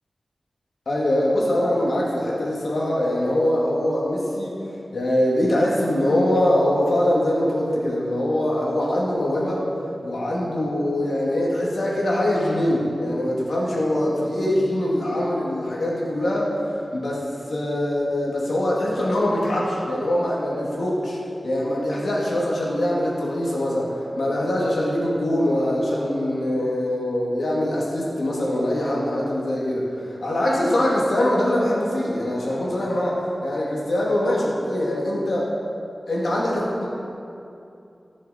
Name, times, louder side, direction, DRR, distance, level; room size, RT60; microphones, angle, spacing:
voice 1, 0.9-4.6 4.9-9.6 10.0-16.5 16.9-35.5 36.1-36.9, left 1 dB, 85° left, -5 dB, 2.2 m, -23 dB
14.5 x 6.5 x 4.3 m, 2.7 s
wide cardioid pair, 80°, 0 cm